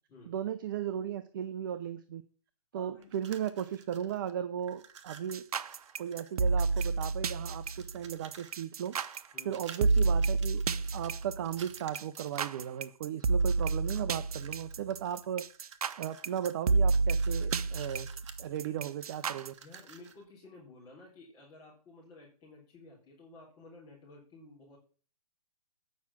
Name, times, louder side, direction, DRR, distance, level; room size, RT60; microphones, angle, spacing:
voice 1, 0.3-2.2 2.7-5.4 6.0-8.9 9.4-10.6 10.9-15.4 16.0-18.1 18.4-19.5, right 9 dB, 35° right, 12 dB, 0.6 m, -36 dB
voice 2, 2.7-3.1 9.3-9.6 19.6-24.8, left 2 dB, 15° left, -7 dB, 4.0 m, -53 dB
sound 1, 3.0-4.3 4.6-7.2 7.5-12.6 13.2-14.1 14.4-20.2, right 7 dB, 50° right, 1.4 m, -53 dB
sound 2, 5.3-19.5, right 4 dB, 70° right, 0.8 m, -30 dB
9.6 x 5.9 x 7.4 m, 0.40 s
hypercardioid pair, 155°, 19 cm